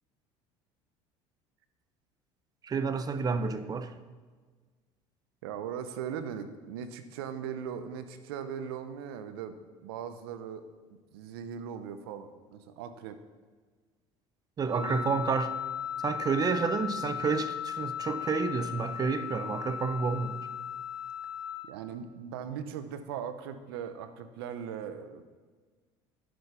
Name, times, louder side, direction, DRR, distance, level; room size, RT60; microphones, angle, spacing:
voice 1, 2.6-3.9 14.6-15.5 16.0-20.4, right 5 dB, 30° right, 11 dB, 0.9 m, -30 dB
voice 2, 5.4-9.6 9.8-10.6 11.1-13.2 14.7-15.2 21.6-25.3, right 8 dB, 85° right, 10 dB, 0.9 m, -39 dB
Wind instrument woodwind instrument, 14.7-21.6, left 9 dB, 10° right, 3.6 m, -37 dB
10.5 x 7.0 x 5.8 m, 1.4 s
supercardioid pair, 90°, 12 cm